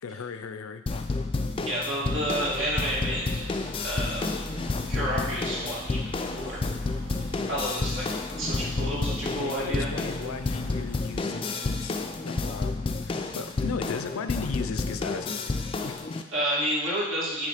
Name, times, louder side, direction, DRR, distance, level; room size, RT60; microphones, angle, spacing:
voice 1, 0.0-0.8 4.8-5.0 8.9-9.0 9.4-15.4 15.8-16.2, left 5 dB, 85° left, 9 dB, 0.5 m, -36 dB
sound 1, 0.9-16.2, left 3 dB, 25° left, 0.3 m, -30 dB
voice 2, 1.6-3.2 3.8-4.3 4.9-6.6 7.5-8.1 8.4-9.9 15.8-15.9 16.3-17.5, equal, 70° right, -6 dB, 2.5 m, -30 dB
sound 2, 2.0-11.2, equal, 40° right, 2.1 m, -42 dB
9.3 x 3.1 x 5.0 m, 1.1 s
head